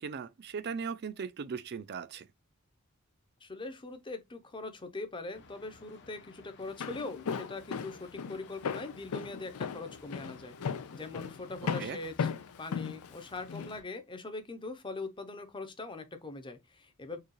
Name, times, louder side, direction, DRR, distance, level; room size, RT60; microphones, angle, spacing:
voice 1, 0.0-2.3 11.8-12.0, right 6 dB, 50° right, 0.4 m, -38 dB
voice 2, 3.4-12.3 12.6-17.2, left 3 dB, 20° left, 0.7 m, -42 dB
sound 1, 5.3-13.8, left 3 dB, 55° left, 0.8 m, -57 dB
Walk footsteps, 6.6-13.7, left 6 dB, 80° left, 0.4 m, -36 dB
4.6 x 2.3 x 3.1 m
head